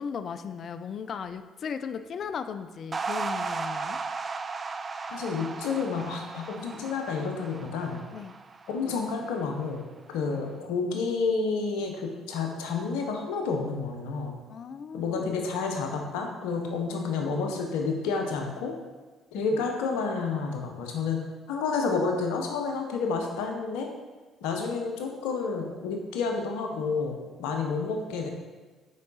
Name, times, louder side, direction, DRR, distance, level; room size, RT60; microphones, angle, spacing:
voice 1, 0.0-4.0 8.1-8.3 10.1-10.3 14.5-15.3, left 6 dB, 55° left, 11 dB, 0.4 m, -37 dB
sound 1, 2.9-9.4, right 4 dB, 35° right, 0.4 m, -35 dB
voice 2, 5.1-8.0 8.7-9.8 10.1-14.4 14.9-18.8 19.3-21.2 21.5-23.9 24.4-28.3, left 4 dB, 75° left, 2 dB, 0.8 m, -30 dB
5.2 x 4.7 x 4.1 m, 1.3 s
hypercardioid pair, 55°, 0 cm